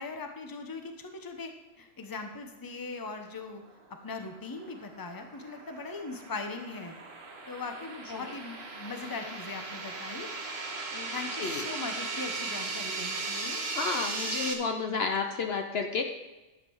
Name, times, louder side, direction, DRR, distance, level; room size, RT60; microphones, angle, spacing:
voice 1, 0.0-1.5 1.8-3.6 4.0-6.9 7.5-10.3 10.9-13.6, left 3 dB, 20° left, 5 dB, 0.9 m, -40 dB
sound 1, 4.1-14.5, right 3 dB, 55° right, 1.5 m, -37 dB
voice 2, 13.7-16.0, left 4 dB, 60° left, 5 dB, 0.9 m, -31 dB
12.0 x 7.5 x 4.7 m, 1.1 s
omnidirectional pair, 1.3 m